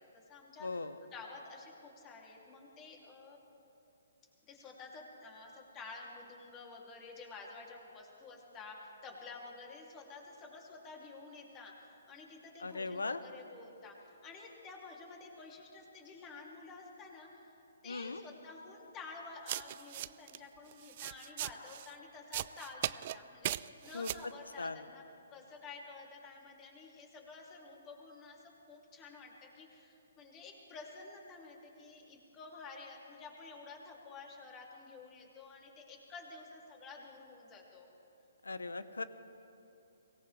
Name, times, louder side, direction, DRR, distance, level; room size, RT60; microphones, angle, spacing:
voice 1, 0.0-0.8 1.1-3.4 4.5-17.5 17.8-25.0 25.3-37.9, left 4 dB, 20° left, -1 dB, 2.8 m, -51 dB
voice 2, 0.6-1.0 12.6-13.2 17.9-18.2 23.9-24.1 24.6-24.8 38.4-39.0, left 3 dB, 80° left, 13 dB, 0.9 m, -38 dB
sound 1, 19.5-20.4 20.7-21.9 22.3-23.2 23.4-24.3, right 14 dB, 40° right, 0.3 m, -38 dB
23.5 x 18.0 x 3.3 m, 2.8 s
figure-of-eight pair, 135°, 0 cm